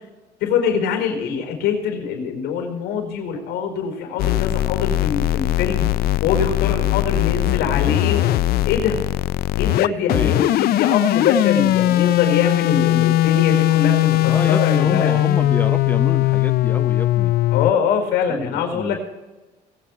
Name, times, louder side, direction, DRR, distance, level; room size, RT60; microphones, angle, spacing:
voice 1, 0.4-5.9 6.2-8.3 8.6-9.0 9.6-15.2 17.5-19.0, left 6 dB, 85° left, 4 dB, 4.9 m, -23 dB
sound 1, 4.2-17.7, left 15 dB, 65° left, 0.4 m, -19 dB
voice 2, 9.8-10.5 14.2-17.3 18.3-19.0, left 2 dB, 10° left, 12 dB, 0.6 m, -28 dB
22.0 x 8.7 x 4.7 m, 1.2 s
cardioid pair, 110°, 17 cm